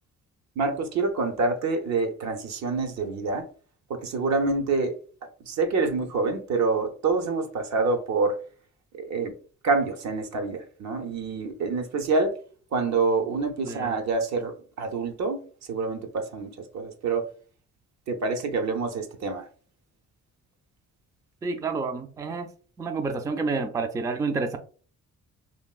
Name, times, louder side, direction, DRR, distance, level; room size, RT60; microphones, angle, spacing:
voice 1, 0.6-3.5 3.9-4.9 5.5-8.4 9.0-9.3 9.6-12.3 12.7-15.4 15.7-17.3 18.1-19.5, right 4 dB, 65° right, 6 dB, 0.7 m, -26 dB
voice 2, 21.4-22.5 22.8-24.6, right 4 dB, 10° right, 6 dB, 0.3 m, -29 dB
3.4 x 2.4 x 2.3 m, 0.42 s
cardioid pair, 90°, 30 cm